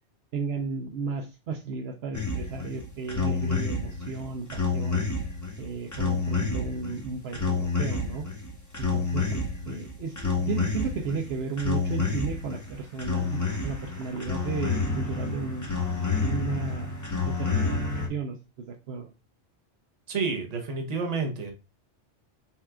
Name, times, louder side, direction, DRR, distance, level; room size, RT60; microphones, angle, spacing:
voice 1, 0.3-5.0 5.6-8.3 8.8-15.9 16.2-17.0 17.2-19.1, right 4 dB, 70° right, 4 dB, 0.8 m, -34 dB
sound 1, 2.1-18.1, left 4 dB, 15° left, 0.8 m, -29 dB
voice 2, 20.1-21.5, right 4 dB, 40° right, 3 dB, 0.9 m, -29 dB
5.5 x 2.4 x 3.5 m, 0.29 s
omnidirectional pair, 1.2 m